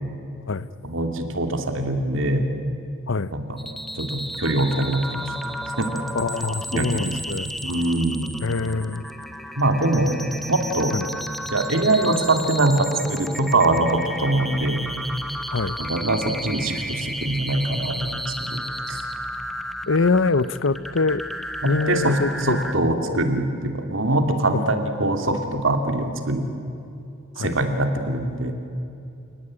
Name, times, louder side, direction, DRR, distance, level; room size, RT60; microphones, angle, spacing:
voice 1, 0.8-2.5 3.3-3.6 3.9-5.3 5.8-5.9 6.7-7.2 7.6-8.3 9.6-10.2 10.5-10.9 11.4-14.9 15.8-18.2 18.5-19.0 21.6-26.5 27.4-28.5, right 2 dB, 65° right, 5 dB, 2.8 m, -23 dB
sound 1, 3.6-22.7, equal, ahead, 1.2 m, -33 dB
voice 2, 6.1-7.5 8.4-9.0 10.9-11.1 15.5-15.8 19.9-21.2 21.6-22.6 23.1-23.2 27.4-27.6, left 3 dB, 65° left, 17 dB, 0.7 m, -24 dB
29.5 x 18.5 x 10.0 m, 2.6 s
head